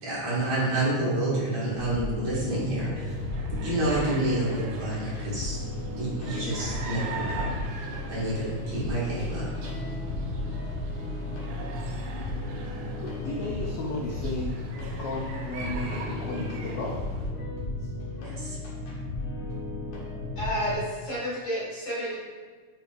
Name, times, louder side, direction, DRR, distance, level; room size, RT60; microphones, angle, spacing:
voice 1, 0.0-3.1 3.5-5.6 5.9-7.6 8.1-9.5 18.2-18.6, right 1 dB, 65° right, -8 dB, 3.3 m, -29 dB
sound 1, 1.2-20.8, equal, 50° right, 1.7 m, -39 dB
sound 2, 1.7-20.7, left 3 dB, 60° left, 2.3 m, -36 dB
sound 3, 3.1-17.3, right 3 dB, 85° right, 2.3 m, -42 dB
voice 2, 13.0-14.6 14.8-17.0 17.8-17.9, left 2 dB, 85° left, -2 dB, 1.3 m, -34 dB
voice 3, 20.4-22.2, equal, 40° left, -8 dB, 2.5 m, -30 dB
8.2 x 5.4 x 2.6 m, 1.5 s
omnidirectional pair, 3.5 m